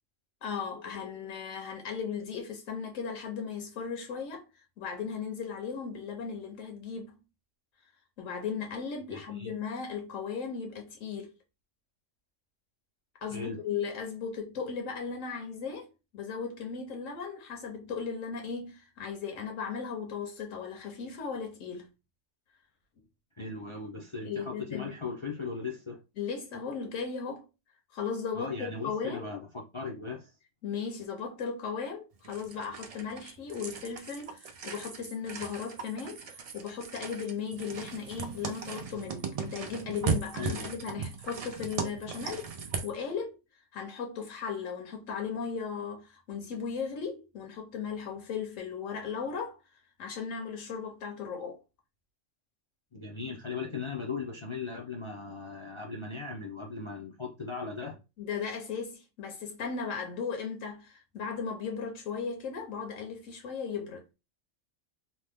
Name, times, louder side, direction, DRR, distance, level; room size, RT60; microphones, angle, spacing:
voice 1, 0.4-4.5 4.8-7.2 8.2-11.3 13.2-21.9 24.2-25.0 26.2-27.5 27.9-29.3 30.6-43.4 43.7-49.6 50.0-51.6 58.2-64.1, left 6 dB, 85° left, 1.1 m, -36 dB
voice 2, 9.1-9.5 13.3-13.6 23.4-26.0 28.3-30.3 40.4-40.7 52.9-58.0, left 4 dB, 55° left, 0.3 m, -38 dB
sound 1, 32.2-42.9, right 5 dB, 75° right, 0.3 m, -37 dB
2.9 x 2.1 x 3.4 m
omnidirectional pair, 1.3 m